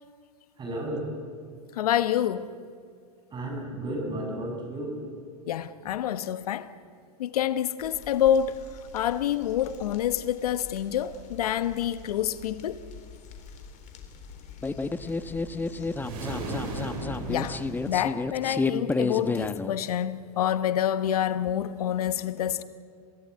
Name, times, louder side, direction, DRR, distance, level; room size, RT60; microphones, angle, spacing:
voice 1, 0.6-1.1 3.3-5.0 16.0-16.7, right 1 dB, 25° right, 7.8 m, -34 dB
voice 2, 1.8-2.5 5.5-6.7 7.2-8.6 8.9-12.8 17.3-17.6 17.9-22.6, left 10 dB, 75° left, 1.2 m, -27 dB
sound 1, 7.8-18.0, left 5 dB, 40° left, 3.9 m, -47 dB
sound 2, 14.6-19.7, left 3 dB, 10° left, 0.9 m, -30 dB
sound 3, 15.9-18.5, right 2 dB, 65° right, 6.5 m, -36 dB
26.5 x 17.5 x 9.7 m
hypercardioid pair, 110°, 20 cm